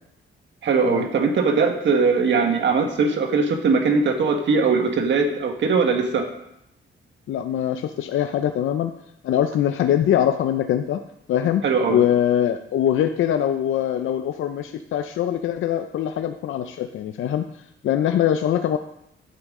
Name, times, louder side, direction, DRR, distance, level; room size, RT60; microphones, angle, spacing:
voice 1, 0.6-6.2 11.6-12.0, right 4 dB, 65° right, 4 dB, 1.5 m, -20 dB
voice 2, 7.3-8.9 9.2-11.0 11.3-17.5 17.8-18.8, left 10 dB, 80° left, 7 dB, 0.6 m, -22 dB
11.5 x 8.8 x 3.7 m, 0.78 s
cardioid pair, 125°, 20 cm